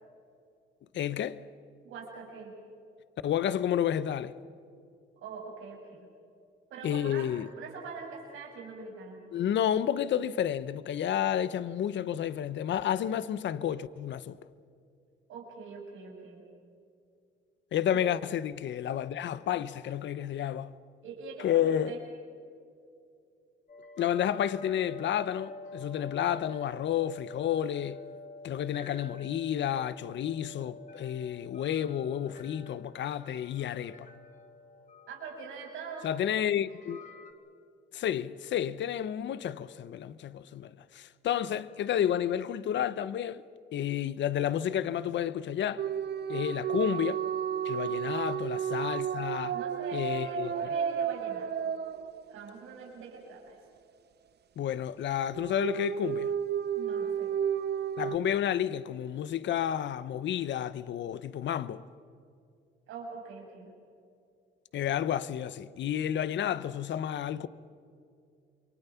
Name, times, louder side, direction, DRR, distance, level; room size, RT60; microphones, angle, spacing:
voice 1, 0.9-1.4 3.2-4.3 6.8-7.5 9.3-14.4 17.7-20.7 21.4-22.0 24.0-28.0 28.4-34.1 36.0-37.0 37.9-43.4 43.7-45.8 46.3-47.2 47.6-49.6 49.9-50.5 54.6-56.3 58.0-61.8 64.7-67.5, left 10 dB, 65° left, 0.9 m, -31 dB
voice 2, 1.8-2.5 5.2-6.1 6.7-7.3 7.5-9.2 15.3-16.4 17.9-18.0 21.0-22.0 35.1-36.1 47.8-47.9 49.5-51.5 52.3-53.6 56.7-57.3 62.9-63.7, right 5 dB, 90° right, 6.2 m, -43 dB
sound 1, 23.7-37.3, left 3 dB, 40° left, 2.7 m, -48 dB
sound 2, 45.8-52.7 55.3-58.2, right 8 dB, 55° right, 1.0 m, -32 dB
28.0 x 23.5 x 5.8 m
cardioid pair, 90°, 20 cm